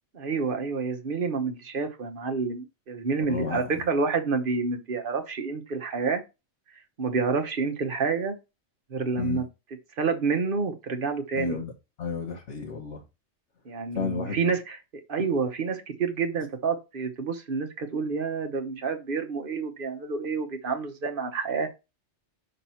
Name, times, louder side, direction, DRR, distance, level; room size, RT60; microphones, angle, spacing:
voice 1, 0.1-6.2 7.0-8.4 8.9-9.4 10.0-11.6 13.6-21.7, right 4 dB, 50° right, 1.2 m, -28 dB
voice 2, 3.3-3.8 9.2-9.4 11.3-11.7 12.0-13.0 13.9-14.4, left 5 dB, 85° left, 1.5 m, -32 dB
6.0 x 3.9 x 5.6 m
omnidirectional pair, 1.2 m